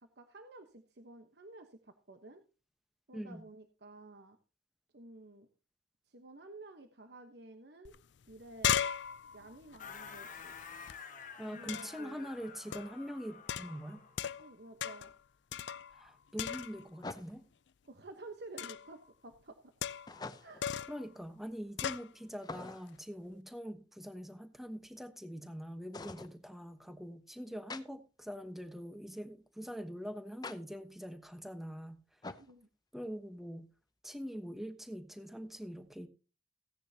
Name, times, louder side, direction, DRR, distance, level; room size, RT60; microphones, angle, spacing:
voice 1, 0.0-2.4 3.1-4.4 4.9-5.5 6.1-7.9 8.3-8.9 9.3-10.5 11.4-12.3 14.4-15.1 17.8-19.9 20.4-20.6 32.3-32.7, right 2 dB, 60° right, 1.1 m, -52 dB
voice 2, 3.1-3.4 11.4-14.0 15.9-17.4 20.9-32.0 32.9-33.7 34.0-36.1, equal, ahead, 1.1 m, -44 dB
sound 1, 7.9-8.0 8.2-11.0 11.7-12.1 12.7-13.0 13.5-14.5 14.8-15.2 15.5-16.1 16.4-17.0 18.6-18.9 19.8-20.2 20.6-21.0 21.8-22.1, left 9 dB, 75° left, 0.4 m, -37 dB
sound 2, 9.8-14.2, left 6 dB, 45° left, 1.5 m, -50 dB
sound 3, 14.4-14.5 17.0-17.6 20.1-20.7 22.4-23.0 25.9-26.3 27.7-27.8 30.4-30.6 32.2-32.5, left 3 dB, 20° left, 0.7 m, -45 dB
16.0 x 9.9 x 2.8 m
head